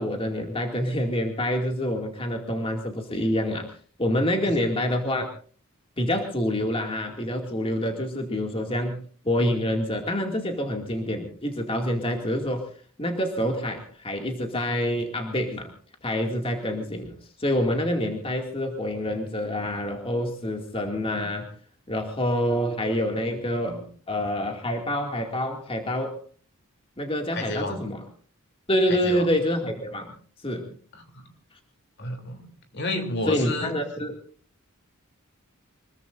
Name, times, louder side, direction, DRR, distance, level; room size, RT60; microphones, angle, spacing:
voice 1, 0.0-3.7 4.0-5.3 6.0-12.7 13.0-15.7 16.0-21.5 21.9-26.2 27.0-28.0 28.7-30.1 30.4-30.7 33.3-34.2, left 1 dB, 25° left, 3 dB, 2.3 m, -27 dB
voice 2, 27.3-27.9 28.9-29.3 30.9-31.3 32.0-33.7, left 2 dB, 55° left, 5 dB, 3.1 m, -31 dB
25.0 x 21.5 x 2.6 m, 0.43 s
head